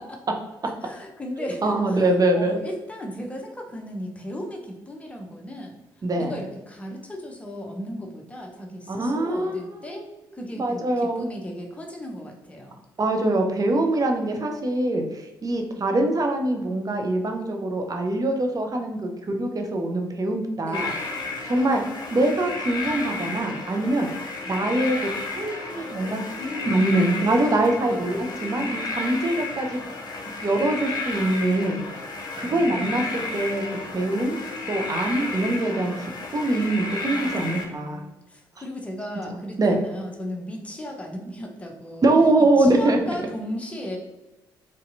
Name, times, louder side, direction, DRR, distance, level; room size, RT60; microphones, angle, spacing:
voice 1, 0.8-5.8 6.2-12.8 20.6-21.0 26.4-27.0 27.8-28.1 32.4-33.2 37.1-42.1 42.6-44.0, equal, 10° left, 1 dB, 0.9 m, -36 dB
voice 2, 1.4-2.6 6.0-6.4 8.9-9.5 9.9-10.1 10.6-11.3 13.0-19.1 19.4-20.9 21.5-21.8 22.1-24.1 24.5-25.0 25.3-26.2 26.6-29.8 30.4-31.8 32.3-33.6 33.9-34.4 34.7-35.9 36.3-38.0 39.6-39.8 42.0-43.2, right 2 dB, 35° right, 3 dB, 0.8 m, -23 dB
sound 1, 20.7-37.7, left 3 dB, 40° left, 0.9 m, -32 dB
4.1 x 3.7 x 2.6 m, 1.0 s
figure-of-eight pair, 40°, 11 cm